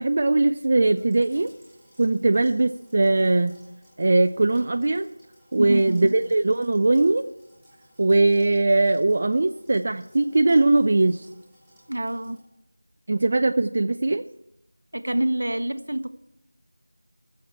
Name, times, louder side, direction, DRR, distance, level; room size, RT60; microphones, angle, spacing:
voice 1, 0.0-1.5 2.0-3.6 4.0-5.1 5.5-7.2 8.0-11.3 13.1-14.2, right 2 dB, 40° right, 6 dB, 0.4 m, -20 dB
sound 1, 0.9-12.4, equal, 5° left, 3.3 m, -57 dB
voice 2, 5.6-6.2 11.9-12.4 14.9-16.1, right 1 dB, 65° right, 11 dB, 0.9 m, -27 dB
20.0 x 7.1 x 4.4 m, 0.88 s
figure-of-eight pair, 170°, 0 cm